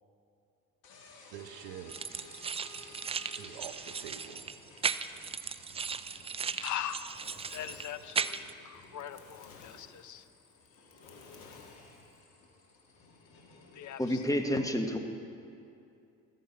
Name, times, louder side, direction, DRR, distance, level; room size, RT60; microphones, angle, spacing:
sound 1, 0.8-14.3, left 3 dB, 65° left, 2.4 m, -56 dB
voice 1, 1.3-2.3 3.4-4.5, right 10 dB, 70° right, 10 dB, 0.9 m, -46 dB
sound 2, 1.9-8.5, right 6 dB, 15° right, 0.3 m, -37 dB
voice 2, 6.1-7.2 7.5-10.3 13.7-14.2 14.5-14.7, left 10 dB, 45° left, 12 dB, 0.8 m, -41 dB
Fire, 6.7-12.2, left 5 dB, 85° left, 1.3 m, -55 dB
voice 3, 14.0-15.0, left 1 dB, 10° left, 5 dB, 1.4 m, -29 dB
13.5 x 9.3 x 5.5 m, 2.5 s
hypercardioid pair, 55°, 40 cm